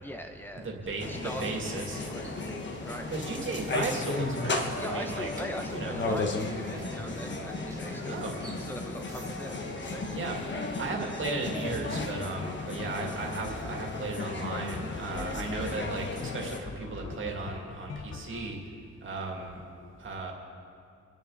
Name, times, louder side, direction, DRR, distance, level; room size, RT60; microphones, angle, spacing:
voice 1, 0.0-3.1 4.8-8.2 8.7-10.1, equal, 5° left, 4 dB, 0.8 m, -42 dB
voice 2, 0.6-2.0 3.1-5.3 5.7-6.0 8.1-8.3 10.1-10.4 10.8-18.6 19.0-19.6 20.0-20.3, right 3 dB, 45° right, 0 dB, 2.3 m, -35 dB
sound 1, 1.0-16.6, left 2 dB, 40° left, 1.2 m, -35 dB
sound 2, 1.3-9.9, right 1 dB, 10° right, 1.6 m, -49 dB
sound 3, 11.7-18.5, left 5 dB, 60° left, 0.9 m, -43 dB
26.0 x 10.5 x 4.0 m, 2.4 s
wide cardioid pair, 180°, 30 cm